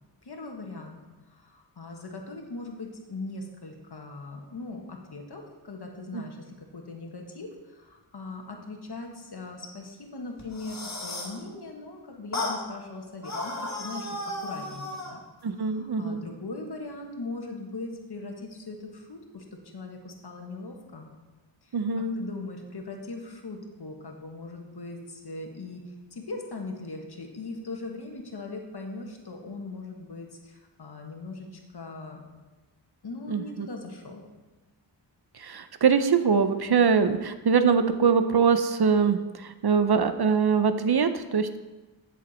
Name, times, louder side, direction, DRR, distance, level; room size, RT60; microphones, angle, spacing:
voice 1, 0.2-1.0 1.3-15.2 15.5-21.1 21.6-32.2 33.0-34.2, left 3 dB, 60° left, 2 dB, 1.6 m, -40 dB
sound 1, 10.4-11.4 12.3-12.6 13.2-15.2, left 2 dB, 35° left, 2.0 m, -34 dB
voice 2, 15.4-16.2 21.7-22.2 33.3-33.7 35.3-41.6, right 6 dB, 55° right, 10 dB, 0.7 m, -23 dB
10.5 x 7.1 x 4.3 m, 1.2 s
wide cardioid pair, 85°, 45 cm